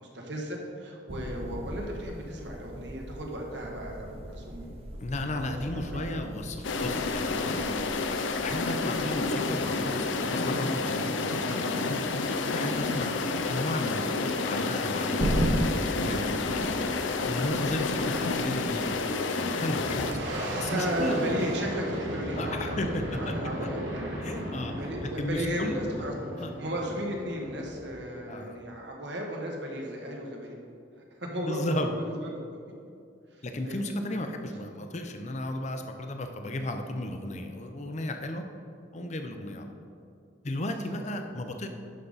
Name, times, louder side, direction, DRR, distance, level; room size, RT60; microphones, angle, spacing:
voice 1, 0.0-4.8 5.3-5.5 5.9-6.2 16.4-16.9 20.3-23.8 24.8-30.6 31.2-32.3 33.6-33.8 40.9-41.0, equal, 70° right, -1 dB, 1.4 m, -35 dB
sound 1, 1.1-19.0, right 1 dB, 30° right, 0.8 m, -37 dB
voice 2, 5.0-7.9 8.4-12.0 12.5-13.2 13.5-15.4 16.0-16.6 17.2-21.3 22.4-23.3 24.2-24.7 25.0-25.8 26.4-26.5 28.3-28.6 31.4-32.0 33.4-38.4 38.9-39.7 40.4-41.7, left 1 dB, 40° left, 5 dB, 0.6 m, -34 dB
sound 2, 6.6-20.1, left 3 dB, 85° left, 0.6 m, -29 dB
Boom, 19.7-28.6, equal, 85° right, 1.5 m, -36 dB
11.5 x 5.1 x 4.1 m, 2.4 s
head